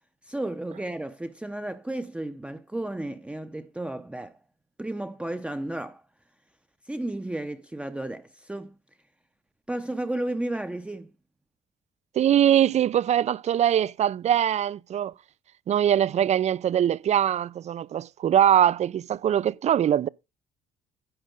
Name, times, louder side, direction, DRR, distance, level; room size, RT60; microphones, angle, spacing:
voice 1, 0.2-4.4 4.8-6.0 6.8-8.8 9.7-11.1, right 1 dB, 5° right, 0.7 m, -33 dB
voice 2, 12.2-15.1 15.7-20.1, right 10 dB, 40° right, 0.5 m, -22 dB
10.5 x 7.6 x 3.8 m
cardioid pair, 110°, 17 cm